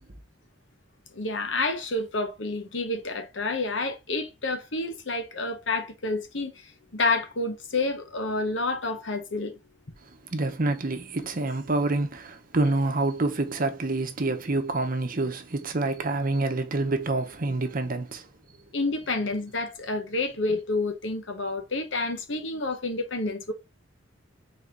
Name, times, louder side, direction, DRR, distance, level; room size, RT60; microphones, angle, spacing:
voice 1, 1.1-9.6 18.7-23.5, left 2 dB, 75° left, 1.1 m, -29 dB
voice 2, 10.3-18.3, right 2 dB, 50° right, 0.8 m, -27 dB
4.1 x 3.8 x 2.8 m
head